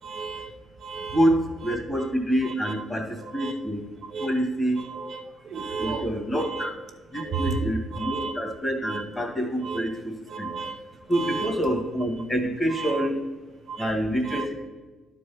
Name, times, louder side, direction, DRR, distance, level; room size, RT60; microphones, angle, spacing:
voice 1, 0.0-0.5 0.8-1.2 1.7-1.8 2.4-2.8 3.2-3.5 4.1-4.3 4.7-6.1 6.3-6.7 7.1-7.6 7.9-8.3 8.8-9.0 9.5-9.8 10.3-10.8 11.0-11.5 12.8-13.1 13.7-13.9 14.2-14.5, right 5 dB, 55° right, 3 dB, 0.9 m, -33 dB
voice 2, 1.6-3.8 4.2-4.8 5.5-6.7 7.1-10.5 11.1-13.2 13.8-14.5, equal, 15° left, 3 dB, 2.1 m, -27 dB
11.5 x 4.7 x 5.9 m, 1.3 s
cardioid pair, 125°, 0 cm